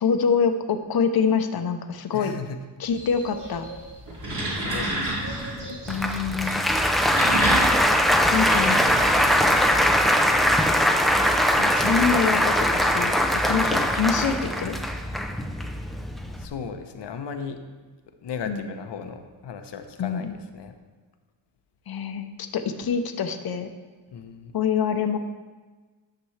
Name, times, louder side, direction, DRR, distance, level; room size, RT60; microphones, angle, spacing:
voice 1, 0.0-2.3 2.8-3.7 5.9-6.6 8.3-8.8 11.6-14.8 18.5-18.7 20.0-20.3 21.9-23.7 24.5-25.2, left 6 dB, 60° left, 8 dB, 0.8 m, -25 dB
voice 2, 2.1-2.6 4.3-5.9 9.2-9.6 15.6-15.8 16.4-17.6 18.2-20.8 24.1-24.5, left 6 dB, 85° left, 7 dB, 0.9 m, -37 dB
sound 1, 2.8-8.1, right 2 dB, 75° right, 3.1 m, -42 dB
sound 2, 4.0-5.7 6.8-9.9, right 1 dB, 50° right, 2.6 m, -29 dB
Applause, 5.9-16.5, equal, ahead, 0.5 m, -21 dB
11.5 x 6.9 x 3.2 m, 1.3 s
wide cardioid pair, 125°, 41 cm